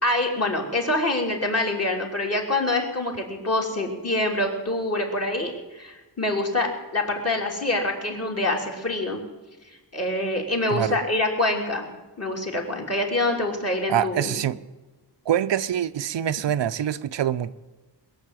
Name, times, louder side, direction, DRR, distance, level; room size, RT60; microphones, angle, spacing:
voice 1, 0.0-9.2 9.9-11.9 12.2-14.4, left 2 dB, 35° left, 3.2 m, -25 dB
voice 2, 13.9-14.6 15.3-17.5, right 10 dB, 80° right, 0.7 m, -25 dB
21.5 x 7.3 x 9.0 m
wide cardioid pair, 140°, 42 cm